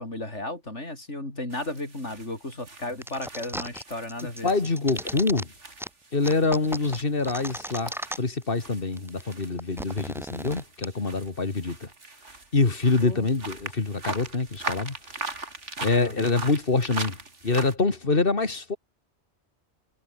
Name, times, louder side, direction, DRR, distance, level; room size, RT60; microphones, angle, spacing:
voice 1, 0.0-4.5 13.0-13.3 16.0-16.3, left 2 dB, 80° left, 6.5 m, -35 dB
sound 1, 1.5-17.7, right 3 dB, 85° right, 3.7 m, -40 dB
sound 2, 3.0-3.8 4.1-5.4 5.8-5.9 6.2-8.4 8.7-8.8 9.0-10.8, equal, ahead, 3.4 m, -35 dB
voice 2, 4.4-5.5 6.1-11.9 12.5-14.9 15.8-17.2 17.4-18.8, left 3 dB, 50° left, 2.5 m, -25 dB
omnidirectional pair, 1.2 m